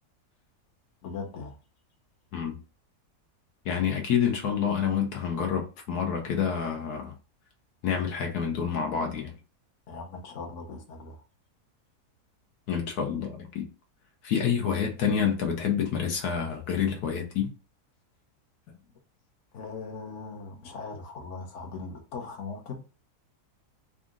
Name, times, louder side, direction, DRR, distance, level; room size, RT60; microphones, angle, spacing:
voice 1, 1.0-1.6 9.9-11.2 19.5-22.8, left 4 dB, 50° left, 1.3 m, -39 dB
voice 2, 3.6-7.1 7.8-9.3 12.7-13.7 14.2-17.5, left 7 dB, 75° left, 1.3 m, -28 dB
4.1 x 2.5 x 3.7 m
omnidirectional pair, 1.7 m